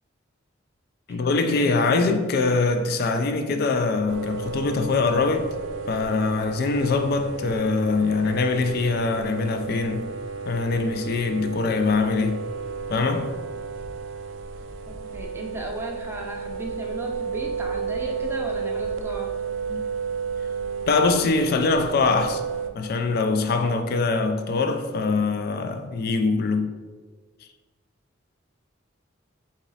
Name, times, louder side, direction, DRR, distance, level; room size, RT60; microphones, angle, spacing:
voice 1, 1.1-5.5 5.9-10.1 10.4-12.4 12.9-13.3 19.7-19.8 20.9-22.4 22.7-26.7, left 3 dB, 50° left, 0.3 m, -23 dB
sound 1, 4.1-22.7, right 5 dB, 70° right, 0.4 m, -32 dB
voice 2, 14.9-19.3, right 1 dB, 10° right, 0.5 m, -35 dB
3.8 x 3.0 x 4.0 m
head